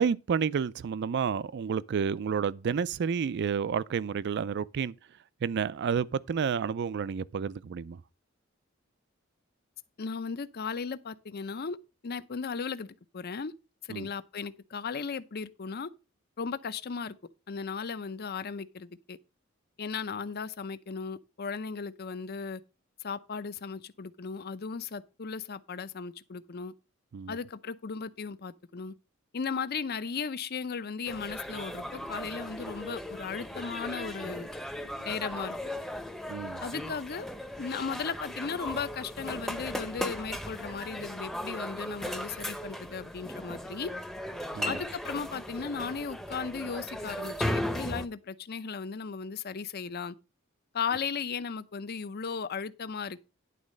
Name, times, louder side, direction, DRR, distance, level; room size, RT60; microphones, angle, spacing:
voice 1, 0.0-4.9 5.4-8.0 13.9-14.1 27.1-27.4 36.3-36.6 44.5-44.8, right 6 dB, 55° right, 0.4 m, -30 dB
voice 2, 10.0-11.8 12.0-12.9 13.1-13.5 13.9-15.9 16.4-17.2 17.5-19.2 19.8-22.6 23.0-26.7 27.3-28.9 29.3-34.5 35.0-35.6 36.6-37.3 37.6-43.9 44.6-50.2 50.7-53.3, left 5 dB, 50° left, 0.6 m, -36 dB
sound 1, 31.1-48.1, equal, ahead, 0.7 m, -37 dB
11.0 x 4.0 x 6.4 m
head